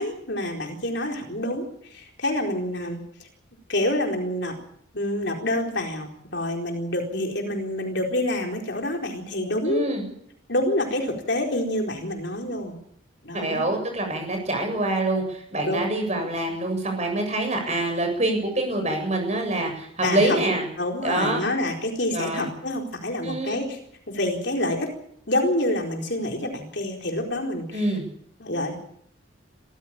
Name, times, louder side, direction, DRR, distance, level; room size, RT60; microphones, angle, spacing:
voice 1, 0.0-3.3 3.7-4.5 4.9-9.9 10.5-12.8 13.2-13.7 15.6-15.8 16.2-16.3 20.0-20.4 20.8-23.8 24.1-24.9 25.3-27.9 28.4-28.7, left 1 dB, 55° left, 2 dB, 4.4 m, -27 dB
voice 2, 9.7-10.0 13.3-20.7 21.0-21.4 22.1-22.5 23.2-23.6 27.7-28.0, right 1 dB, 35° right, 4 dB, 7.6 m, -25 dB
26.0 x 14.5 x 8.9 m, 0.70 s
head